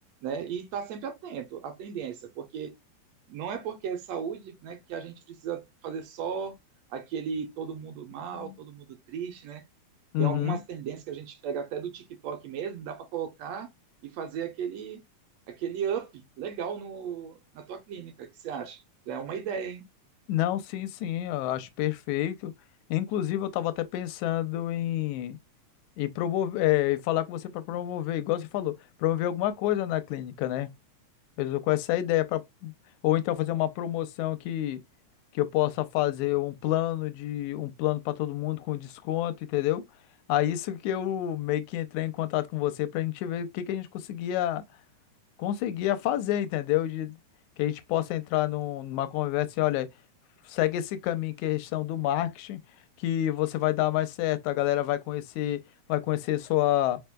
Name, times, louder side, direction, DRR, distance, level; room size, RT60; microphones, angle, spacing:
voice 1, 0.2-2.7 3.3-6.6 6.9-9.6 10.2-13.7 14.0-15.0 15.5-19.9, right 7 dB, 70° right, 1.8 m, -35 dB
voice 2, 10.1-10.6 20.3-22.5 22.9-25.4 26.0-30.7 31.4-32.7 33.0-34.8 35.3-39.8 40.3-44.6 45.4-47.2 47.6-49.9 50.5-52.6 53.0-55.6 55.9-57.0, left 13 dB, 90° left, 2.0 m, -28 dB
4.9 x 4.4 x 2.2 m
omnidirectional pair, 3.4 m